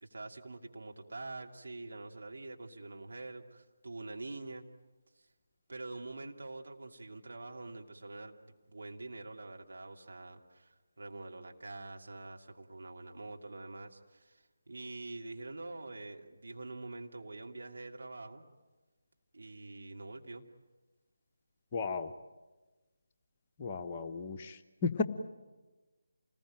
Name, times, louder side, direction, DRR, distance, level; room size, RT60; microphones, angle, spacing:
voice 1, 0.0-4.6 5.7-18.4 19.3-20.5, right 2 dB, 60° right, 2 dB, 2.7 m, -45 dB
voice 2, 21.7-22.1 23.6-25.0, left 4 dB, 25° left, 4 dB, 1.2 m, -34 dB
28.5 x 20.5 x 9.1 m, 1.2 s
figure-of-eight pair, 155°, 0 cm